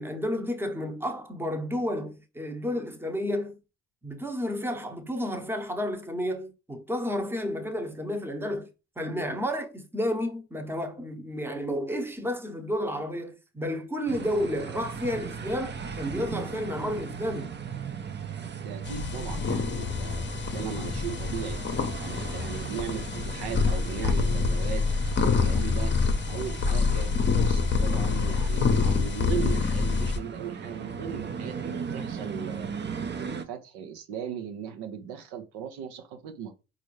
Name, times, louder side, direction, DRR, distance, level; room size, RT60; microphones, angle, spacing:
voice 1, 0.0-3.6 4.0-8.7 9.0-17.5, equal, 5° right, 0.8 m, -31 dB
sound 1, 14.1-33.4, right 6 dB, 30° right, 0.6 m, -38 dB
voice 2, 18.6-20.2 20.5-21.6 22.0-24.8 25.2-25.9 26.3-32.7 33.2-36.5, right 8 dB, 80° right, 0.7 m, -37 dB
sound 2, 18.8-30.2, left 4 dB, 30° left, 0.7 m, -26 dB
4.1 x 2.6 x 3.1 m
supercardioid pair, 60°, 38 cm